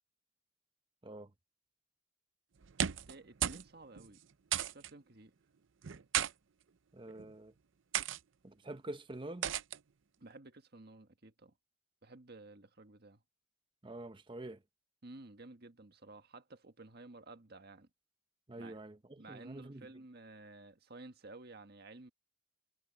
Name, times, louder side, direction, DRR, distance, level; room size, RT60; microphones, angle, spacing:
sound 1, 2.6-3.2 3.4-3.7 4.0-4.1 4.5-4.9 5.8-6.3 7.1-7.3 7.9-8.2 9.4-9.8, right 10 dB, 70° right, 0.6 m, -34 dB
voice 1, 3.1-4.2 4.6-5.3 10.2-11.5 12.0-13.2 15.0-17.9 18.6-18.8 19.2-22.1, right 2 dB, 55° right, 1.6 m, -53 dB
voice 2, 6.9-7.5 8.4-9.5 13.8-14.6 18.5-19.9, right 2 dB, 25° right, 0.8 m, -46 dB
head